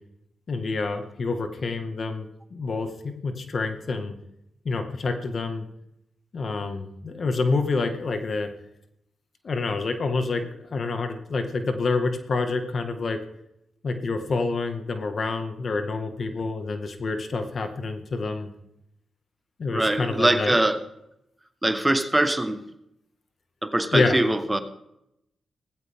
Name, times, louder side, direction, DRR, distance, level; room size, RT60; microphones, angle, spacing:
voice 1, 0.5-4.1 4.7-5.7 6.3-8.5 9.4-13.2 13.8-18.5 19.6-20.6 23.9-24.2, left 3 dB, 60° left, 6 dB, 1.9 m, -27 dB
voice 2, 19.7-20.8 21.6-22.6 23.6-24.6, right 1 dB, 15° right, 9 dB, 1.6 m, -22 dB
17.5 x 15.5 x 3.8 m, 0.80 s
supercardioid pair, 45°, 0 cm